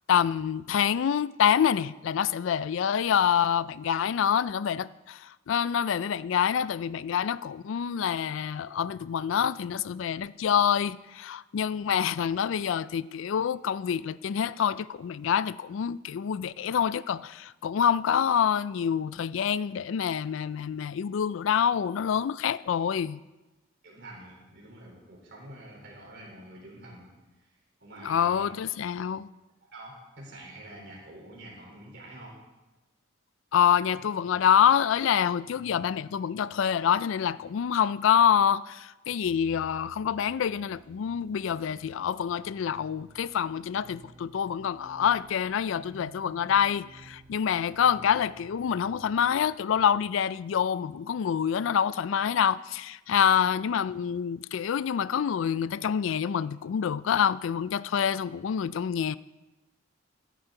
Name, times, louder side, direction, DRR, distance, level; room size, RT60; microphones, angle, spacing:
voice 1, 0.1-5.2 5.5-23.2 28.0-29.3 33.5-59.2, left 8 dB, 70° left, 0.3 m, -26 dB
voice 2, 23.8-27.1 27.8-28.5 29.0-29.1 29.7-32.4 53.1-53.4, right 1 dB, 55° right, 3.8 m, -47 dB
sound 1, 39.2-49.9, right 1 dB, 25° right, 3.7 m, -53 dB
13.5 x 10.5 x 3.8 m
head